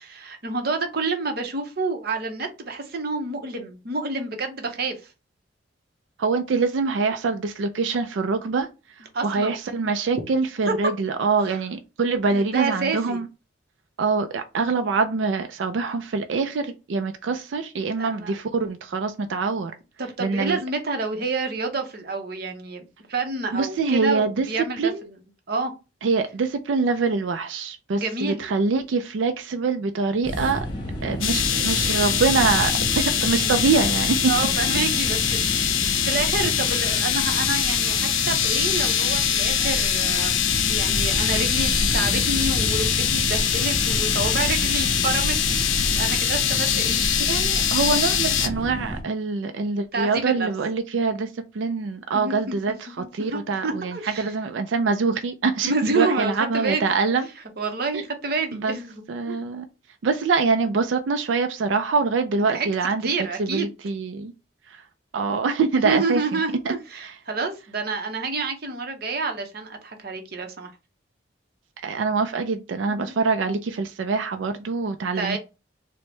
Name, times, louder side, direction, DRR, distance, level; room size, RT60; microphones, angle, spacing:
voice 1, 0.0-4.9 9.1-9.5 10.7-10.8 11.4-11.6 12.3-13.2 17.9-18.3 20.0-25.2 25.5-25.7 27.9-28.5 33.4-33.5 34.3-35.4 35.8-40.4 40.7-45.4 46.0-47.0 49.9-50.5 52.1-52.5 53.0-54.3 55.6-56.9 57.6-59.0 59.3-59.4 62.4-62.7 63.0-63.7 65.8-70.7 72.9-73.2 75.1-75.4, right 3 dB, 50° right, 0.8 m, -28 dB
voice 2, 6.2-8.7 9.2-13.3 14.0-19.7 20.2-20.6 23.5-24.5 24.8-25.0 26.0-30.7 31.0-34.2 47.2-51.3 51.5-52.9 53.1-57.3 57.9-58.0 58.5-58.8 59.1-59.6 60.0-63.0 63.4-64.3 65.1-66.4 66.7-67.2 71.8-75.4, right 4 dB, 70° right, 0.4 m, -24 dB
sound 1, 30.2-49.0, equal, 25° left, 1.0 m, -30 dB
sound 2, 31.2-48.5, left 9 dB, 80° left, 0.5 m, -23 dB
4.3 x 2.1 x 3.1 m
head